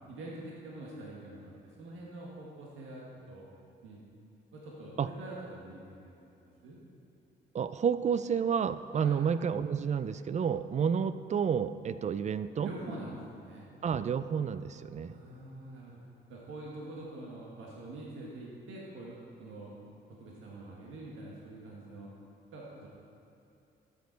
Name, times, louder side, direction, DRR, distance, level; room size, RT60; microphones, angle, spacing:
voice 1, 0.1-1.4 1.8-3.5 3.8-4.0 4.5-6.1 6.4-6.8 8.9-9.2 12.6-13.7 15.0-16.0 16.3-19.7 20.2-22.1 22.5-22.9, right 2 dB, 80° right, -4 dB, 1.6 m, -45 dB
voice 2, 7.5-12.7 13.8-15.2, right 7 dB, 35° right, 13 dB, 0.4 m, -30 dB
13.0 x 6.8 x 4.0 m, 2.7 s
cardioid pair, 90°, 20 cm